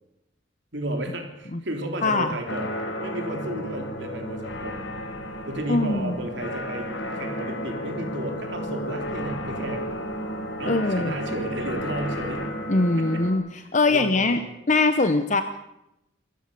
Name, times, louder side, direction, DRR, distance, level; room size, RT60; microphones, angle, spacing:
voice 1, 0.7-2.7 3.0-4.8 5.5-6.9 7.1-9.9 10.6-12.5 13.0-13.2 13.6-14.5, right 1 dB, 65° right, 3 dB, 3.5 m, -33 dB
voice 2, 2.0-2.3 5.7-6.2 10.7-11.1 12.7-13.4 13.7-14.4 14.7-15.4, left 3 dB, 40° left, 9 dB, 0.9 m, -22 dB
sound 1, 2.5-13.3, equal, 80° left, 4.3 m, -33 dB
28.0 x 14.5 x 6.9 m, 0.88 s
head